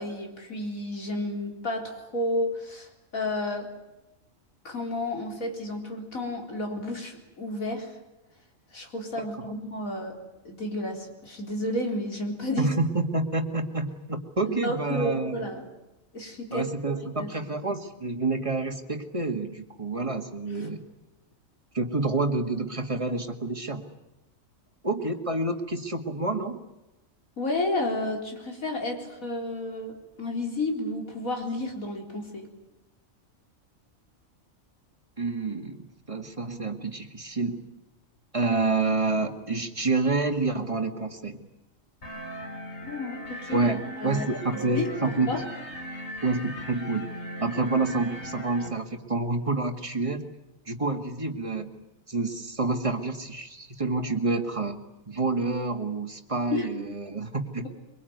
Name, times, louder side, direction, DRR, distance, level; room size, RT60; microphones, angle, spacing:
voice 1, 0.0-2.9 3.1-3.7 4.6-7.9 8.7-10.2 10.4-12.7 14.5-15.6 16.1-16.7 17.2-17.3 27.4-32.5 42.8-43.6 44.0-44.3 44.7-45.4 56.5-56.7, left 1 dB, 80° left, 2 dB, 4.5 m, -31 dB
voice 2, 9.2-9.5 12.6-15.4 16.5-20.8 21.7-23.9 24.8-26.6 35.2-37.6 38.3-41.4 43.5-45.4 46.2-47.1 47.4-50.3 50.7-51.7 52.1-57.7, right 3 dB, 25° right, 6 dB, 2.0 m, -28 dB
sound 1, 42.0-48.7, equal, 50° left, 4.5 m, -39 dB
23.5 x 23.0 x 9.5 m, 0.99 s
omnidirectional pair, 1.4 m